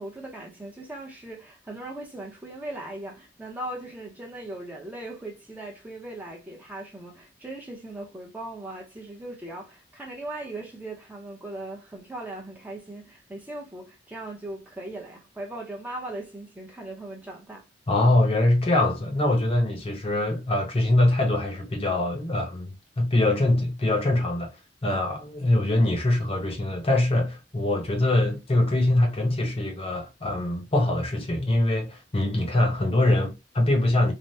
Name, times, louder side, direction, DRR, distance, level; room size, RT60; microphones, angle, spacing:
voice 1, 0.0-17.6, right 1 dB, 10° right, 0.7 m, -39 dB
voice 2, 17.9-24.5 24.8-34.1, left 1 dB, 30° left, 0.8 m, -23 dB
3.3 x 2.1 x 2.6 m
head